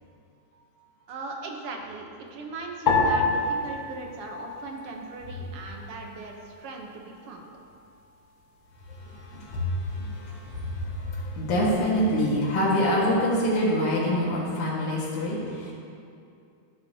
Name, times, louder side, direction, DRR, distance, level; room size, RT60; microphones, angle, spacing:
voice 1, 1.1-7.5, right 3 dB, 65° right, 2 dB, 1.6 m, -39 dB
sound 1, 2.9-5.4 5.6-6.5 7.2-7.6, left 3 dB, 50° left, 1.5 m, -28 dB
voice 2, 8.9-15.7, equal, 75° left, -6 dB, 2.8 m, -26 dB
12.0 x 11.0 x 2.8 m, 2.5 s
omnidirectional pair, 3.5 m